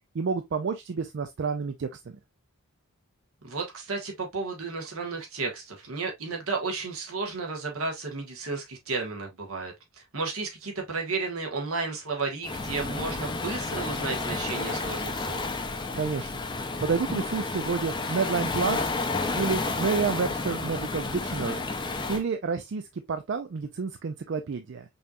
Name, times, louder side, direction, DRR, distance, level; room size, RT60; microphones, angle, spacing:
voice 1, 0.1-2.2 16.0-16.3 16.8-18.9 19.4-21.7 22.1-24.8, right 5 dB, 55° right, 0.4 m, -29 dB
voice 2, 3.4-15.4, right 4 dB, 75° right, 1.4 m, -33 dB
Waves surf, 12.4-22.2, left 3 dB, 20° left, 0.5 m, -31 dB
5.4 x 2.9 x 2.3 m
head